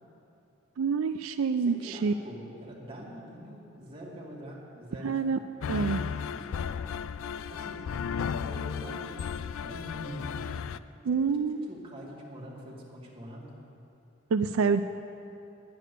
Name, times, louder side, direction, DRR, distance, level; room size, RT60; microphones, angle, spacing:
voice 1, 0.8-2.1 5.0-5.4 5.7-6.1 11.0-11.7 14.3-14.8, right 5 dB, 80° right, 9 dB, 0.4 m, -27 dB
voice 2, 1.6-5.2 6.3-6.9 7.5-7.9 8.2-10.6 11.1-13.6, equal, 25° right, -5 dB, 2.1 m, -44 dB
sound 1, 5.6-10.8, left 7 dB, 80° left, 0.3 m, -34 dB
10.5 x 10.5 x 6.7 m, 2.8 s
head